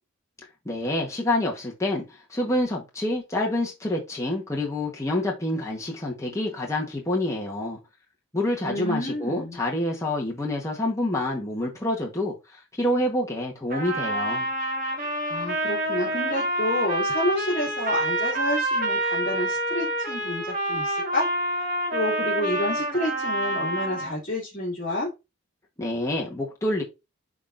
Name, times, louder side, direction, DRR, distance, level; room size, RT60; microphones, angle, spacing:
voice 1, 0.6-7.8 8.3-14.5 25.8-26.8, left 1 dB, 15° left, 1.1 m, -27 dB
voice 2, 8.6-9.6 15.0-21.3 21.5-25.1, left 1 dB, 35° left, 2.5 m, -29 dB
Trumpet, 13.7-24.1, right 1 dB, 40° right, 1.4 m, -27 dB
11.0 x 3.7 x 2.5 m
head